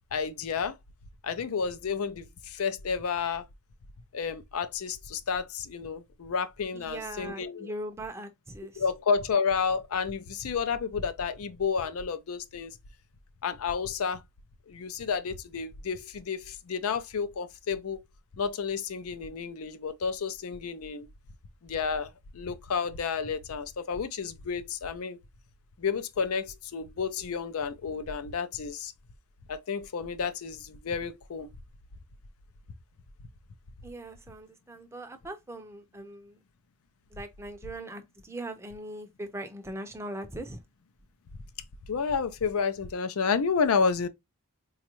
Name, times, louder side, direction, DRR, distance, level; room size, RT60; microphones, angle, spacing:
voice 1, 0.1-0.7 1.2-3.4 4.1-7.7 8.8-12.8 13.4-14.2 14.7-18.0 18.4-21.1 21.6-25.2 25.8-28.9 29.5-31.5 41.9-44.1, left 5 dB, 85° left, 0.5 m, -31 dB
voice 2, 6.7-8.8 33.8-36.4 37.1-40.6, right 1 dB, 10° right, 0.5 m, -40 dB
4.1 x 2.4 x 2.9 m
head